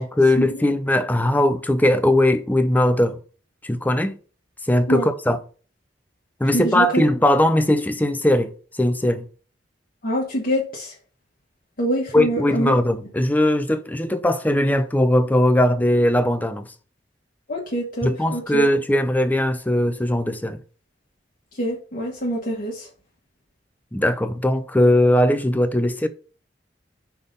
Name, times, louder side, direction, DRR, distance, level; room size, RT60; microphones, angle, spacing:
voice 1, 0.0-3.2 3.6-4.2 4.7-5.4 6.4-9.3 12.1-16.7 18.0-20.6 23.9-26.1, left 1 dB, 10° left, 0.5 m, -19 dB
voice 2, 6.5-7.0 10.0-10.9 11.8-12.8 17.5-18.6 21.5-22.9, equal, 55° left, 1.5 m, -25 dB
6.0 x 3.6 x 5.3 m
head